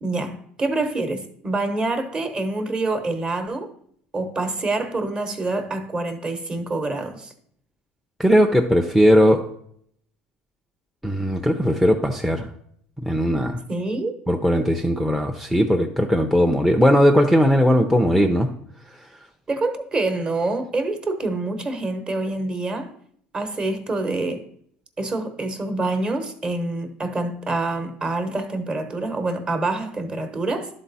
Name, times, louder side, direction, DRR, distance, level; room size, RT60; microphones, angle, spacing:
voice 1, 0.0-3.7 4.1-7.3 13.7-14.1 19.5-22.9 23.3-24.5 25.0-30.7, right 2 dB, 25° right, 1.0 m, -26 dB
voice 2, 8.2-9.4 11.0-12.5 13.0-13.6 14.3-18.5, equal, ahead, 0.5 m, -18 dB
11.5 x 3.9 x 4.1 m
supercardioid pair, 115°, 4 cm